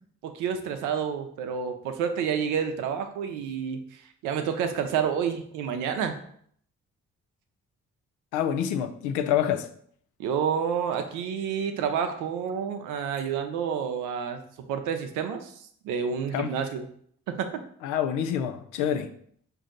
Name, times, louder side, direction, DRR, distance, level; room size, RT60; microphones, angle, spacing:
voice 1, 0.2-6.2 10.2-14.4 14.7-15.5 15.8-16.8 17.3-17.6, right 7 dB, 85° right, 0.6 m, -29 dB
voice 2, 8.3-9.7 16.3-16.5 17.8-19.1, left 9 dB, 85° left, 0.5 m, -27 dB
5.2 x 2.7 x 3.7 m
supercardioid pair, 50°, 30 cm